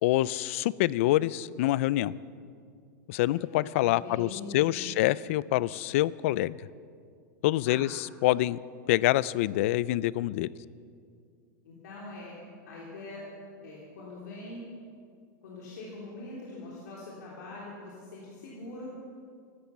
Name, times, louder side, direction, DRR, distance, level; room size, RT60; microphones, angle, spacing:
voice 1, 0.0-2.1 3.1-6.6 7.4-8.6 8.9-10.5, left 15 dB, 45° left, 20 dB, 0.3 m, -26 dB
voice 2, 3.3-4.9 7.7-7.8 11.6-12.4 12.7-13.3 13.6-14.6 15.4-18.9, left 2 dB, 65° left, -4 dB, 3.5 m, -43 dB
15.0 x 13.0 x 7.2 m, 2.3 s
supercardioid pair, 180°, 10 cm